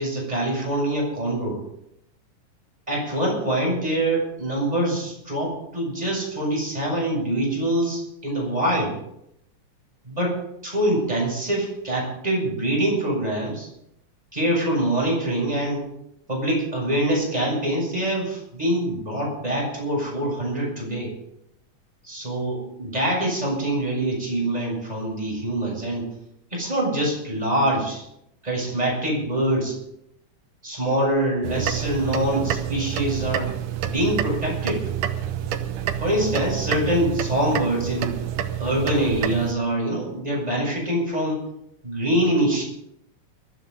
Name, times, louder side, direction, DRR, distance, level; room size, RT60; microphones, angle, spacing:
voice 1, 0.0-1.6 2.9-9.0 10.0-13.7 14.3-15.9 16.3-21.1 22.0-26.1 26.5-28.0 28.4-29.8 30.6-33.5 33.8-35.0 36.0-38.2 38.6-41.4 41.8-42.6, right 1 dB, 10° right, -3 dB, 7.1 m, -24 dB
sound 1, 31.4-39.5, right 10 dB, 85° right, 2.5 m, -28 dB
22.5 x 13.0 x 4.0 m, 0.78 s
omnidirectional pair, 3.7 m